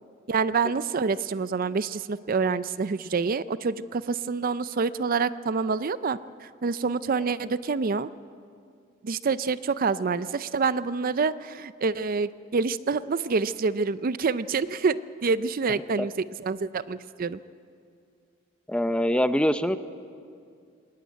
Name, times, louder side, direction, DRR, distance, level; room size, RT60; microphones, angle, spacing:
voice 1, 0.3-6.2 6.6-8.1 9.0-17.4, right 4 dB, 45° right, 15 dB, 0.5 m, -27 dB
voice 2, 18.7-19.8, equal, 5° left, 11 dB, 0.6 m, -23 dB
20.5 x 18.0 x 9.3 m, 2.4 s
head